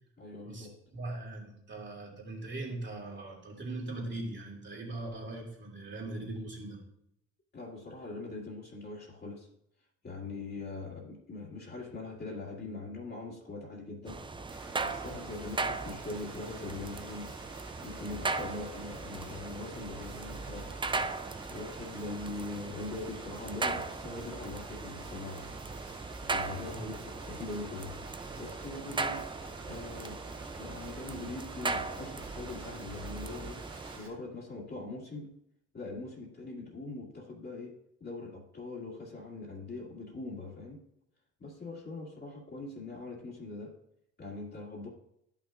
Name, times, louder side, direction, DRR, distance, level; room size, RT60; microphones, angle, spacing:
voice 1, 0.2-0.8 7.5-9.5 10.0-14.2 14.8-17.3 17.8-20.8 21.5-25.5 26.2-28.0 28.4-29.3 29.6-33.6 34.0-35.3 35.7-37.8 38.0-40.8 41.4-43.8 44.2-44.9, left 3 dB, 35° left, -5 dB, 2.0 m, -42 dB
voice 2, 0.9-6.8 26.7-26.9, right 2 dB, 40° right, -2 dB, 2.7 m, -40 dB
sound 1, 14.1-34.0, right 3 dB, 15° right, 0.4 m, -38 dB
sound 2, 14.5-34.1, right 3 dB, 65° right, 2.7 m, -51 dB
12.0 x 6.0 x 2.5 m, 0.76 s
cardioid pair, 90°, 30 cm